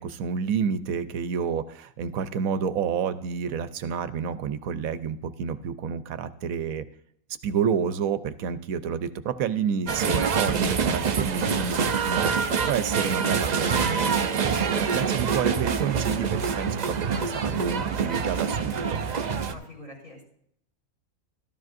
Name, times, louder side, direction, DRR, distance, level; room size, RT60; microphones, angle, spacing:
voice 1, 0.0-6.8 7.4-19.0, right 7 dB, 75° right, 12 dB, 1.1 m, -29 dB
sound 1, 9.9-19.5, right 6 dB, 55° right, 0.4 m, -26 dB
voice 2, 11.3-11.8 19.4-20.2, left 3 dB, 80° left, -3 dB, 4.9 m, -42 dB
13.5 x 13.0 x 2.6 m, 0.69 s
omnidirectional pair, 1.5 m